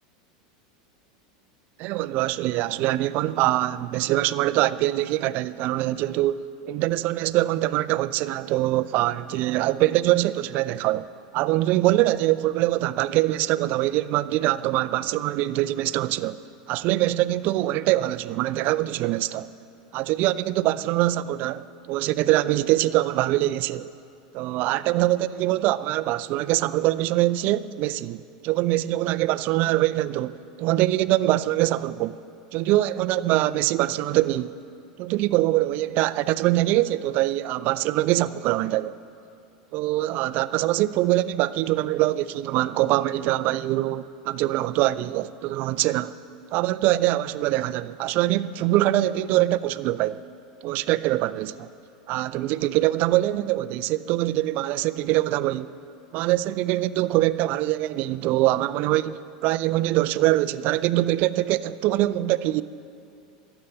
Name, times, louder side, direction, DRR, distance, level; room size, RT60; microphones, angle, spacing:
voice 1, 1.8-11.1 11.3-16.4 16.7-19.5 19.9-23.9 24.3-32.2 32.5-34.5 35.0-38.9 39.7-46.1 46.5-50.2 50.6-51.7 52.1-55.7 56.1-62.6, right 15 dB, 50° right, 0.4 m, -23 dB
12.5 x 8.0 x 8.6 m
supercardioid pair, 115°, 4 cm